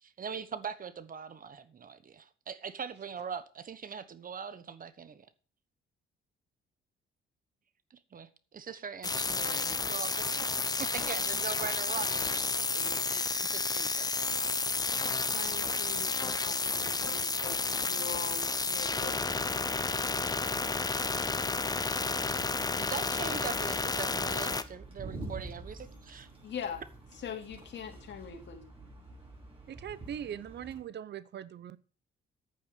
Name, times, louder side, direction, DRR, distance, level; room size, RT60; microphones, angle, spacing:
voice 1, 0.0-5.3 7.9-10.4 10.8-14.3 22.8-26.3, right 6 dB, 45° right, 1.2 m, -41 dB
sound 1, 9.0-24.6, left 3 dB, 20° left, 0.9 m, -31 dB
voice 2, 15.3-19.2 26.4-26.8 27.2-28.6, left 7 dB, 65° left, 2.6 m, -42 dB
sound 2, 23.4-30.8, right 2 dB, 25° right, 7.0 m, -47 dB
voice 3, 29.7-31.8, right 9 dB, 60° right, 0.8 m, -41 dB
9.1 x 9.0 x 6.7 m
cardioid pair, 90°, 20 cm